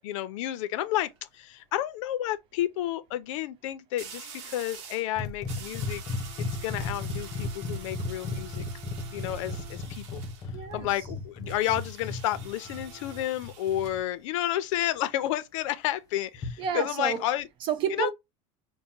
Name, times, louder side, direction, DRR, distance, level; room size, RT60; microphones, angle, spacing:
voice 1, 0.0-6.0 6.4-8.7 9.1-10.2 10.7-17.5 17.9-18.1, left 13 dB, 80° left, 0.6 m, -31 dB
sound 1, 0.8-1.2 4.0-5.1 5.5-10.5 11.5-14.0, right 6 dB, 65° right, 1.1 m, -46 dB
sound 2, 5.2-14.0 16.3-16.7, left 2 dB, 20° left, 0.5 m, -35 dB
voice 2, 10.5-10.9 16.6-17.3 17.6-18.1, right 7 dB, 30° right, 0.5 m, -30 dB
5.4 x 2.2 x 2.8 m
cardioid pair, 175°, 16 cm